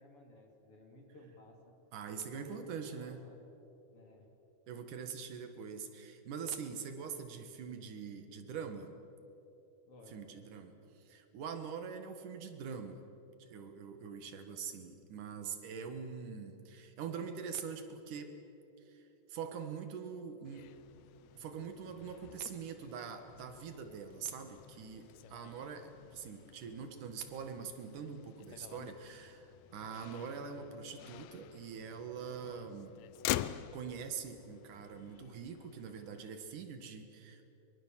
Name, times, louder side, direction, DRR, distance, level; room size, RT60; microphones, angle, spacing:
voice 1, 0.0-1.7 2.3-3.4 3.9-4.3 5.2-5.3 9.8-10.9, left 1 dB, 45° left, 2 dB, 3.6 m, -58 dB
voice 2, 1.9-3.2 4.7-9.0 10.1-13.0 13.4-18.4 18.9-20.7 21.3-33.0 33.7-37.6, right 6 dB, 75° right, 7 dB, 3.1 m, -44 dB
Motor vehicle (road), 20.4-36.3, left 13 dB, 75° left, 1.7 m, -46 dB
23.5 x 23.0 x 7.4 m, 3.0 s
omnidirectional pair, 3.7 m